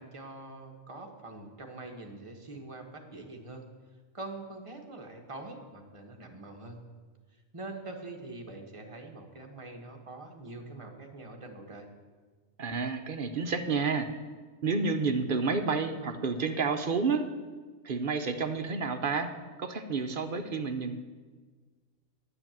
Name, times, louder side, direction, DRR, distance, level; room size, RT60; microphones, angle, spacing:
voice 1, 0.0-3.7 4.1-6.8 7.5-11.9, right 2 dB, 25° right, 2 dB, 1.3 m, -44 dB
voice 2, 12.6-14.1 14.6-17.2 17.8-21.0, right 4 dB, 50° right, 7 dB, 0.8 m, -30 dB
9.9 x 7.8 x 7.4 m, 1.4 s
omnidirectional pair, 1.4 m